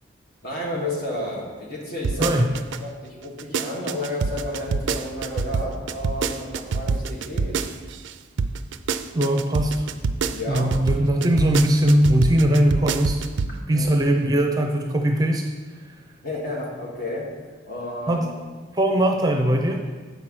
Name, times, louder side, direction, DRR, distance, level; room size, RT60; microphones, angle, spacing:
voice 1, 0.4-2.4 2.8-7.7 10.3-10.7 13.4-13.9 16.2-17.3 17.7-18.3, left 1 dB, 50° left, -3 dB, 1.9 m, -31 dB
sound 1, 2.0-2.8 3.2-8.1 8.4-13.6 13.9-14.0, right 5 dB, 65° right, 0.4 m, -25 dB
voice 2, 9.1-9.9 10.5-13.3 13.7-15.4 15.9-16.0 18.1-18.3 18.7-19.8, right 1 dB, 20° right, 3 dB, 0.6 m, -20 dB
8.1 x 4.7 x 6.1 m, 1.5 s
head